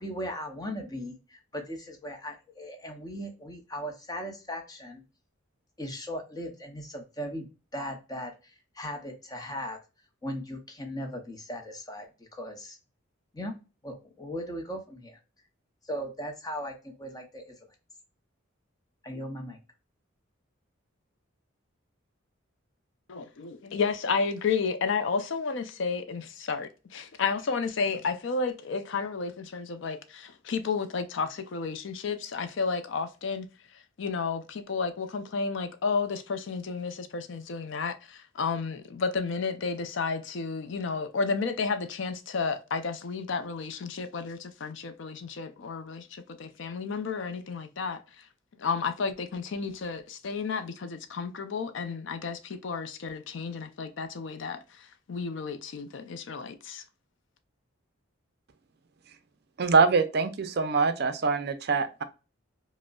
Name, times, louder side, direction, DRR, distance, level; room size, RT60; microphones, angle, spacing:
voice 1, 0.0-5.0 5.8-9.8 10.2-12.8 13.3-13.6 13.8-15.2 15.8-17.5 19.0-19.6, equal, 20° left, 0.6 m, -38 dB
voice 2, 23.1-48.3 48.6-56.8, left 5 dB, 60° left, 0.4 m, -32 dB
voice 3, 59.6-62.0, right 4 dB, 50° right, 0.5 m, -24 dB
5.0 x 2.0 x 2.3 m
head